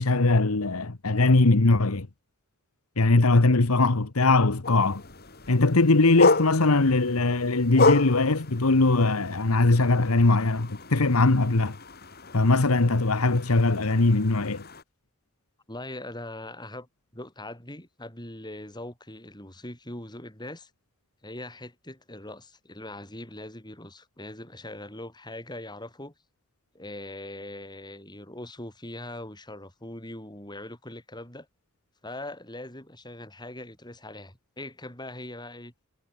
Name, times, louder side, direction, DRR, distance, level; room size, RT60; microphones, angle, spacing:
voice 1, 0.0-2.1 3.0-5.0 5.5-11.8 12.3-14.6, left 2 dB, 85° left, 1.3 m, -21 dB
sound 1, 4.6-14.8, left 3 dB, 45° left, 3.7 m, -30 dB
voice 2, 15.7-16.9 17.1-20.7 21.2-26.1 26.7-31.5 32.0-35.7, left 1 dB, 20° left, 7.2 m, -41 dB
head